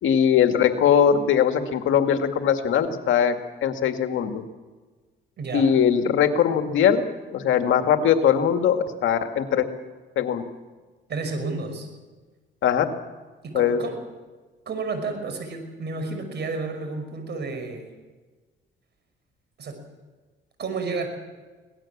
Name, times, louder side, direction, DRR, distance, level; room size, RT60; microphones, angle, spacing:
voice 1, 0.0-3.4 3.6-4.4 5.5-7.0 7.3-9.6 10.2-10.4 12.6-12.9 13.5-13.8, left 8 dB, 80° left, 6 dB, 2.0 m, -20 dB
voice 2, 5.4-5.7 11.1-11.9 13.4-14.0 14.7-17.9 19.6-19.8 20.6-21.1, right 3 dB, 60° right, 7 dB, 5.8 m, -31 dB
25.0 x 18.0 x 7.3 m, 1.3 s
cardioid pair, 90°, 20 cm